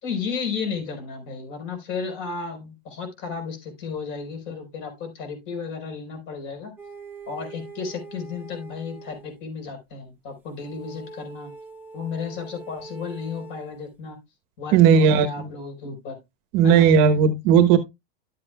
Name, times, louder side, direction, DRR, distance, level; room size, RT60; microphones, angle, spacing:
voice 1, 0.0-6.7 7.3-11.5 11.9-14.2 14.6-16.2 16.6-16.9, left 5 dB, 40° left, 4.3 m, -33 dB
sound 1, 6.8-9.4 10.6-13.9, right 4 dB, 5° right, 1.3 m, -43 dB
voice 2, 14.7-15.5 16.5-17.8, right 7 dB, 45° right, 1.1 m, -16 dB
12.0 x 7.6 x 2.3 m
supercardioid pair, 155°, 30 cm